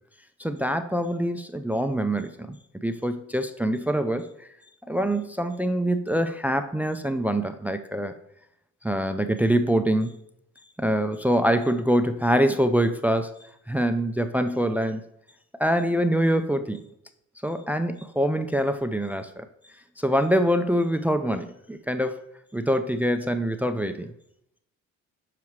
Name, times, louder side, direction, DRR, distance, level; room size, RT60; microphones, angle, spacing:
voice 1, 0.4-4.5 4.9-8.1 8.8-10.2 10.8-13.3 13.7-15.0 15.6-16.8 17.4-19.5 20.0-22.2 22.5-24.1, equal, 5° right, 9 dB, 0.4 m, -24 dB
7.0 x 4.8 x 3.1 m, 0.76 s
cardioid pair, 90°, 30 cm